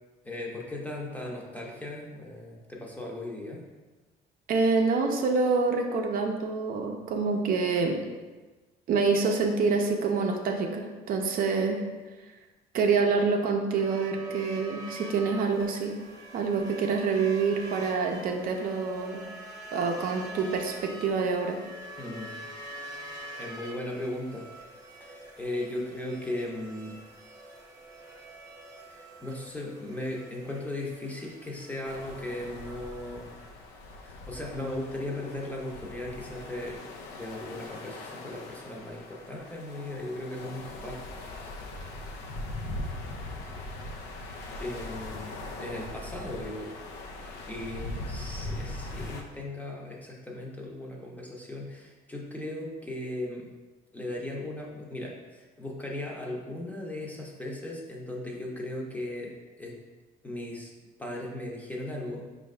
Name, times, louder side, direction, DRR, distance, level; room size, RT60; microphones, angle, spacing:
voice 1, 0.2-3.6 22.0-22.4 22.9-24.5 25.0-27.0 28.9-33.4 34.0-36.8 37.1-41.0 41.4-41.8 44.6-46.7 47.5-53.5 53.9-59.7 60.2-60.7 61.0-62.3, left 1 dB, 10° left, -2 dB, 0.7 m, -37 dB
voice 2, 4.5-8.0 8.9-11.9 12.7-16.0 16.3-19.2 19.7-21.6, right 4 dB, 60° right, 3 dB, 0.5 m, -26 dB
sound 1, 13.7-33.5, right 1 dB, 20° right, 0.8 m, -45 dB
sound 2, 31.8-49.2, left 2 dB, 85° left, 0.5 m, -40 dB
4.5 x 2.5 x 3.2 m, 1.2 s
cardioid pair, 110°, 17 cm